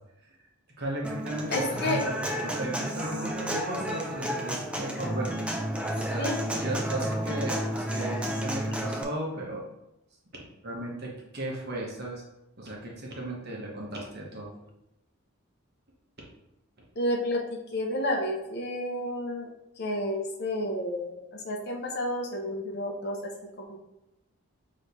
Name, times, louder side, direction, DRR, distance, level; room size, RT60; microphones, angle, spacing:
voice 1, 0.8-5.4 5.9-9.7 10.3-12.2 12.6-14.5, right 1 dB, 50° right, -2 dB, 1.1 m, -35 dB
Human voice / Acoustic guitar, 1.0-9.0, equal, 5° right, 0.4 m, -31 dB
voice 2, 1.5-2.0 6.2-6.4 17.0-17.4 17.7-19.5 19.8-23.2 23.6-23.8, left 1 dB, 50° left, 2 dB, 0.7 m, -30 dB
6.3 x 3.1 x 2.7 m, 0.90 s
head